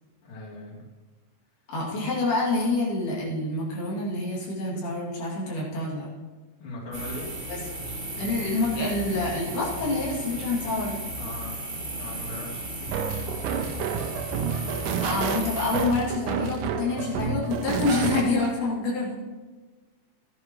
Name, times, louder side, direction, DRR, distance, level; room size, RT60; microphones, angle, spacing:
voice 1, 0.2-0.9 6.6-7.4 11.2-13.3, left 1 dB, 35° left, -6 dB, 3.8 m, -40 dB
voice 2, 1.7-6.1 7.5-7.6 8.2-11.0 14.7-19.1, left 3 dB, 80° left, -6 dB, 4.7 m, -27 dB
sound 1, 6.9-15.8, right 1 dB, 25° right, 1.0 m, -35 dB
sound 2, 12.9-18.5, right 7 dB, 75° right, 2.2 m, -30 dB
16.0 x 11.0 x 3.2 m, 1.3 s
omnidirectional pair, 4.4 m